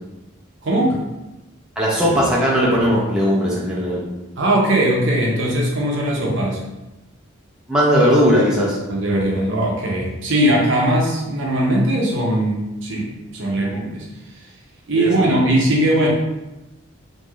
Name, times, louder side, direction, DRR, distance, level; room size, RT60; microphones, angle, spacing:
voice 1, 0.6-1.0 4.4-6.6 8.9-14.0 14.9-16.1, right 1 dB, 60° right, -2 dB, 0.6 m, -19 dB
voice 2, 1.8-4.0 7.7-8.8 15.0-15.3, equal, 5° right, -6 dB, 0.5 m, -17 dB
3.1 x 2.6 x 2.3 m, 0.99 s
head